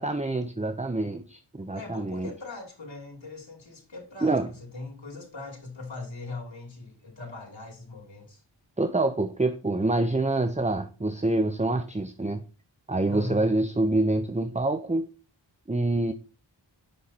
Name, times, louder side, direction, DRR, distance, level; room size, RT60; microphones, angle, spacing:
voice 1, 0.0-2.3 4.2-4.5 8.8-12.4 12.9-15.1 15.7-16.1, right 2 dB, 15° right, 0.8 m, -26 dB
voice 2, 1.7-8.4 13.1-13.4, left 3 dB, 75° left, 2.6 m, -40 dB
8.6 x 5.9 x 4.1 m
wide cardioid pair, 55°, 46 cm